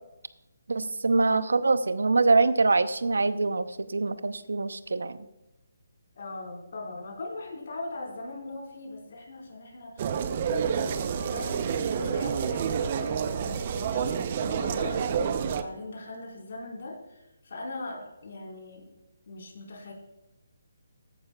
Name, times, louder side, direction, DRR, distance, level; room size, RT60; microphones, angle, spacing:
voice 1, 0.7-5.2, right 3 dB, 75° right, 13 dB, 0.8 m, -24 dB
voice 2, 6.1-18.9 19.3-19.9, left 2 dB, 55° left, 0 dB, 4.7 m, -40 dB
sound 1, 10.0-15.6, right 7 dB, 40° right, 0.8 m, -29 dB
15.5 x 11.5 x 2.4 m, 0.95 s
figure-of-eight pair, 150°, 0 cm